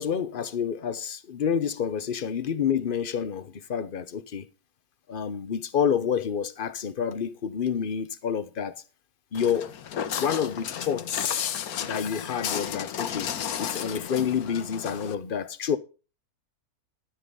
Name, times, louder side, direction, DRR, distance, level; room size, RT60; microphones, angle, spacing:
voice 1, 0.0-4.5 5.1-8.8 9.3-11.4 11.8-13.3 13.6-15.8, left 7 dB, 45° left, 0.8 m, -29 dB
Walk footsteps, 9.3-15.1, left 9 dB, 75° left, 1.4 m, -33 dB
13.5 x 7.7 x 5.4 m
omnidirectional pair, 1.6 m